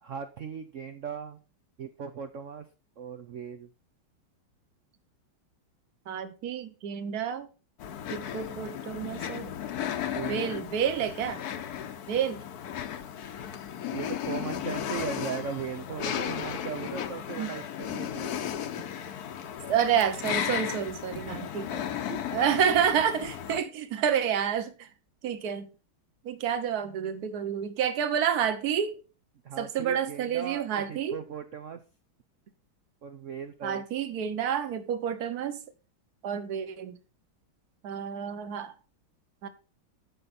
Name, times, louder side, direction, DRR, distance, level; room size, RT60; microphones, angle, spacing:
voice 1, 0.0-1.4 1.8-2.7 3.0-3.7 10.0-10.5 13.9-18.4 21.1-21.5 22.1-22.2 29.4-31.8 33.0-33.8, right 7 dB, 85° right, 0.6 m, -38 dB
voice 2, 6.1-7.5 8.1-9.5 10.3-11.4 12.1-12.4 17.4-17.5 19.7-21.9 22.3-24.9 25.2-25.7 26.2-29.0 29.6-31.2 33.6-35.6 36.2-37.0 37.8-38.7 39.4-39.5, right 8 dB, 55° right, 1.3 m, -29 dB
sound 1, 7.8-23.6, left 9 dB, 60° left, 1.1 m, -35 dB
12.5 x 5.4 x 4.2 m
omnidirectional pair, 2.3 m